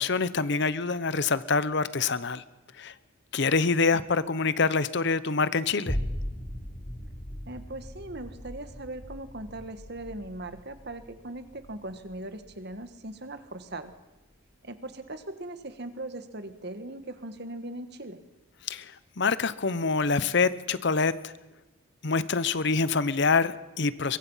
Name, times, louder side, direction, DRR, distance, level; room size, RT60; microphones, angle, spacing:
voice 1, 0.0-2.4 2.8-2.9 3.3-6.0 18.7-18.9 19.2-21.1 22.0-24.2, left 4 dB, 55° left, 16 dB, 0.8 m, -25 dB
voice 2, 3.9-4.3 7.4-13.9 14.6-18.2, right 1 dB, 55° right, 10 dB, 1.6 m, -40 dB
sound 1, 5.9-14.4 14.9-15.0, equal, 30° left, 3.2 m, -39 dB
23.0 x 23.0 x 5.7 m, 1.1 s
head